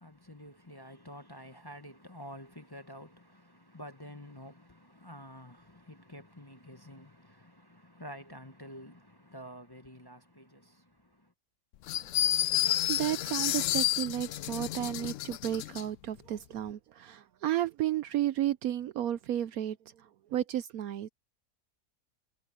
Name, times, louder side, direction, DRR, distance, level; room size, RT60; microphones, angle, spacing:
voice 1, 0.0-10.6, equal, 15° left, 0.9 m, -49 dB
sound 1, 11.9-15.8, left 13 dB, 70° left, 0.7 m, -30 dB
voice 2, 12.9-21.1, right 12 dB, 70° right, 1.0 m, -33 dB
omnidirectional pair, 1.8 m